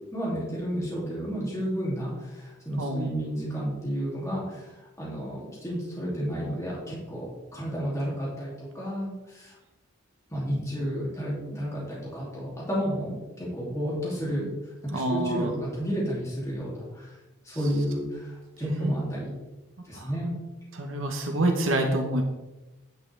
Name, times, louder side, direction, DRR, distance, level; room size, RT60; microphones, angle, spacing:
voice 1, 0.1-4.7 5.0-9.5 10.3-14.5 14.9-17.1 17.4-19.3 19.9-20.3, equal, 15° left, -7 dB, 2.7 m, -31 dB
voice 2, 2.8-3.1 14.9-15.5 18.6-18.9 19.9-20.1 20.7-22.2, right 1 dB, 75° right, 3 dB, 1.1 m, -27 dB
10.0 x 8.4 x 3.4 m, 1.1 s
head